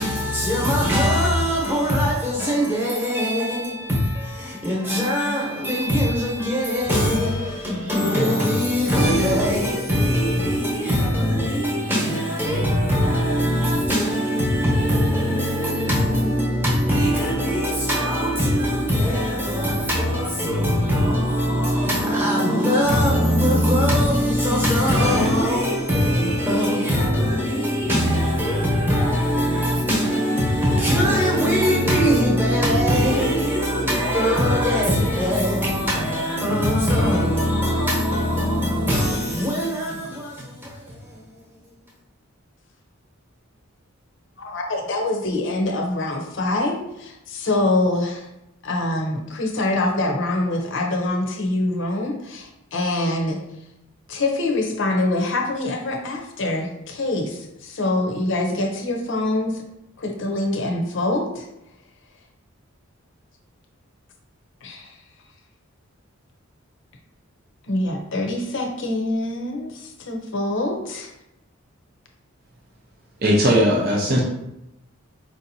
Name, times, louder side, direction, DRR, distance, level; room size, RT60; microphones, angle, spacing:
voice 1, 0.0-41.4, equal, 10° right, 1.0 m, -21 dB
voice 2, 44.4-48.3 48.6-53.4 54.1-59.6 60.0-61.5 64.6-64.9 67.7-71.1, left 2 dB, 60° left, 0.7 m, -25 dB
voice 3, 73.2-74.2, equal, 45° right, 0.6 m, -18 dB
4.7 x 2.7 x 2.7 m
head